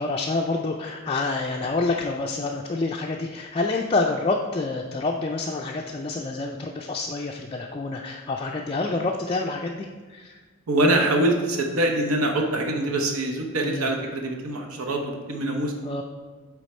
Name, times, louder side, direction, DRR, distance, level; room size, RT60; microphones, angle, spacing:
voice 1, 0.0-10.4 13.6-13.9 15.8-16.0, left 3 dB, 25° left, 0 dB, 0.3 m, -27 dB
voice 2, 10.7-15.7, right 1 dB, 80° right, 2 dB, 0.8 m, -24 dB
8.3 x 3.5 x 4.3 m, 1.5 s
head